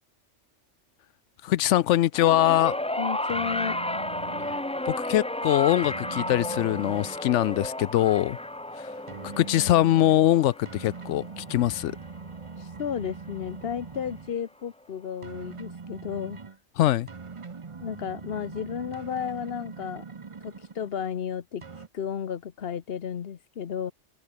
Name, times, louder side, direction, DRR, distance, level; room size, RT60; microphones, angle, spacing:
voice 1, 1.4-2.8 4.9-8.4 8.7-12.0 16.8-17.1, left 13 dB, 75° left, 0.9 m, -23 dB
sound 1, 2.1-12.6 13.6-13.7, left 1 dB, 10° left, 0.4 m, -33 dB
voice 2, 3.0-3.8 12.6-16.4 17.8-20.0 20.4-21.6 21.9-23.9, left 8 dB, 55° left, 1.1 m, -33 dB
sound 2, 3.3-4.6 5.8-7.2 9.1-10.3 10.7-14.4 15.2-16.6 17.1-21.0 21.6-21.9, right 5 dB, 30° right, 0.8 m, -42 dB
open air
omnidirectional pair, 1.3 m